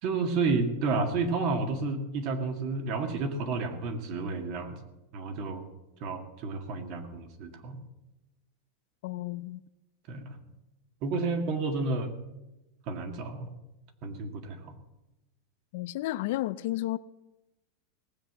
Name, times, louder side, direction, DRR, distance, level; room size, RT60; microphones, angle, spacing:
voice 1, 0.0-4.8 5.1-5.7 6.0-7.8 10.1-10.4 11.0-12.1 12.9-13.5 14.0-14.7, right 3 dB, 45° right, 1.9 m, -31 dB
voice 2, 9.0-9.6 15.7-17.0, left 16 dB, 60° left, 0.5 m, -32 dB
18.5 x 7.9 x 7.4 m
supercardioid pair, 160°, 0 cm